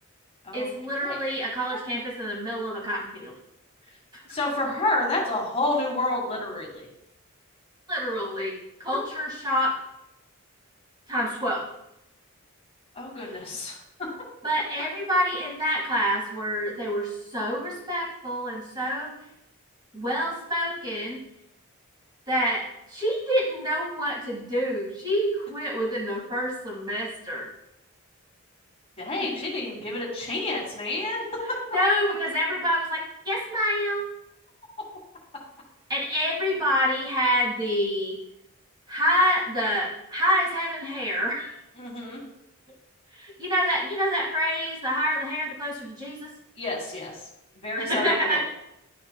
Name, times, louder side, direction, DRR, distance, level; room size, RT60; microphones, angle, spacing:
voice 1, 0.5-3.3 7.9-8.5 8.8-9.8 11.1-11.6 14.4-19.1 19.9-21.2 22.3-22.6 22.9-27.5 31.7-34.1 35.9-38.2 38.9-41.5 43.1-46.3 47.8-48.4, equal, 20° right, -4 dB, 2.1 m, -27 dB
voice 2, 4.3-6.9 13.0-13.8 29.0-31.2 41.8-42.2 46.6-47.1 47.6-48.4, left 2 dB, 25° left, -2 dB, 1.9 m, -29 dB
12.0 x 4.3 x 2.4 m, 0.83 s
head